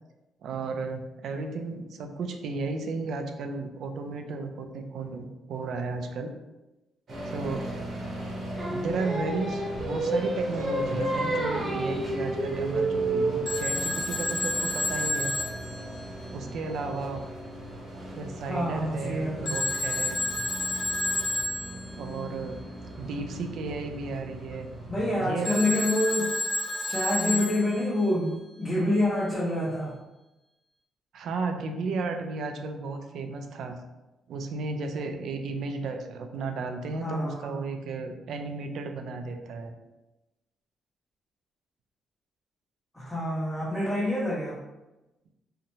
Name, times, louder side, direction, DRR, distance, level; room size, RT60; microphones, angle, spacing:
voice 1, 0.4-6.3 7.3-7.7 8.7-15.4 16.3-17.2 18.1-20.2 22.0-22.6 23.0-24.7 25.2-25.5 31.1-33.8 34.3-39.7, right 3 dB, 70° right, 5 dB, 0.3 m, -34 dB
sound 1, 7.1-25.3, right 1 dB, 55° right, 0.8 m, -39 dB
Singing, 8.6-13.8, right 2 dB, 25° right, 0.7 m, -29 dB
Telephone, 13.5-16.6 19.5-22.0 25.5-28.1, left 1 dB, 55° left, 0.8 m, -30 dB
voice 2, 18.5-19.5 24.9-26.4 26.8-30.0 37.0-37.6 42.9-44.6, left 1 dB, 10° left, -8 dB, 0.7 m, -27 dB
2.8 x 2.1 x 2.7 m, 1.0 s
cardioid pair, 90°, 0 cm